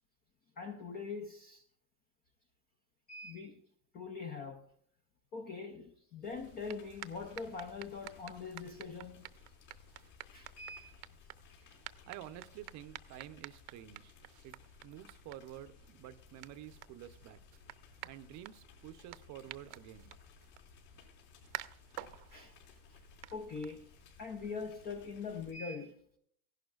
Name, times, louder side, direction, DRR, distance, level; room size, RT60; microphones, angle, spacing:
voice 1, 0.6-1.6 3.1-3.6 3.9-4.7 5.3-9.3 10.3-11.0 22.3-22.5 22.9-23.0 23.3-23.9 24.2-26.0, left 4 dB, 25° left, 0.3 m, -43 dB
sound 1, 6.2-25.5, left 5 dB, 65° left, 4.1 m, -59 dB
sound 2, 6.4-24.2, right 18 dB, 70° right, 0.8 m, -52 dB
voice 2, 12.1-14.1 14.4-14.5 14.8-17.4 18.0-20.1, right 12 dB, 35° right, 0.6 m, -50 dB
15.5 x 11.5 x 2.4 m
supercardioid pair, 145°, 48 cm